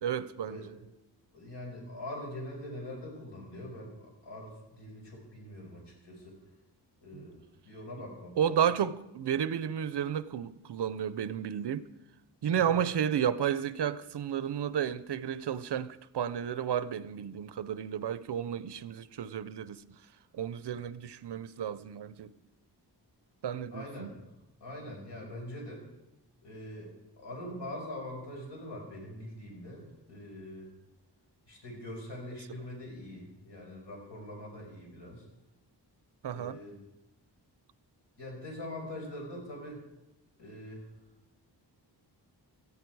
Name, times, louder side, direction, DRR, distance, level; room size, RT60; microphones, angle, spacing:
voice 1, 0.0-0.6 7.1-7.2 8.4-11.9 12.4-19.8 20.3-22.3 23.4-24.1 36.2-36.6, right 9 dB, 70° right, 0.7 m, -32 dB
voice 2, 1.3-6.4 7.0-8.6 12.6-12.7 23.7-24.3 24.6-25.8 26.4-26.9 27.2-30.7 31.5-35.2 36.3-36.8 38.2-39.8 40.4-40.8, left 1 dB, 75° left, 5.5 m, -43 dB
17.5 x 14.0 x 4.7 m
wide cardioid pair, 155°, 42 cm